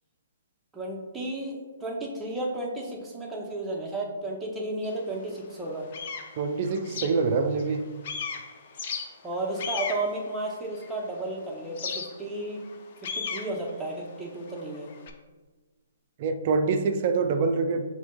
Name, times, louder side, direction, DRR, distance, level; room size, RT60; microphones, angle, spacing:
voice 1, 0.7-5.9 9.2-12.6 13.0-14.9, right 2 dB, 10° right, -2 dB, 0.8 m, -33 dB
sound 1, 4.8-4.9 5.5-7.8 8.0-11.2 11.8-15.1, left 5 dB, 50° left, 0.5 m, -36 dB
voice 2, 6.4-7.8 16.2-17.9, right 4 dB, 45° right, 7 dB, 0.4 m, -25 dB
6.9 x 2.8 x 2.2 m, 1.3 s
hypercardioid pair, 140°, 0 cm